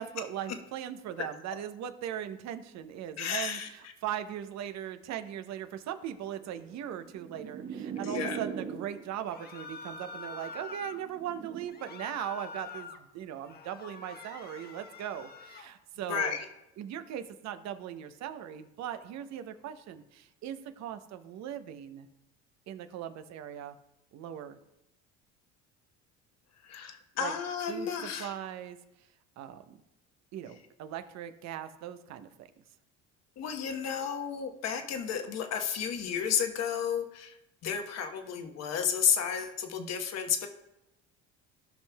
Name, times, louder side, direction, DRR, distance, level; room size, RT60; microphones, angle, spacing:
voice 1, 0.0-16.4 16.8-22.1 22.7-23.8 24.1-24.6 27.2-27.3 27.7-28.8 29.4-29.8 30.3-32.5, right 10 dB, 60° right, 10 dB, 0.8 m, -39 dB
voice 2, 3.2-3.7 8.0-8.4 16.1-16.4 26.6-28.3 33.4-37.3 37.6-40.5, left 7 dB, 55° left, 5 dB, 1.1 m, -32 dB
sound 1, 6.2-9.2 10.1-11.7, right 7 dB, 45° right, 1.2 m, -40 dB
sound 2, 9.3-11.0 11.7-13.0 13.4-15.7, left 3 dB, 30° left, 0.9 m, -45 dB
15.5 x 5.5 x 2.3 m, 0.90 s
supercardioid pair, 80°, 31 cm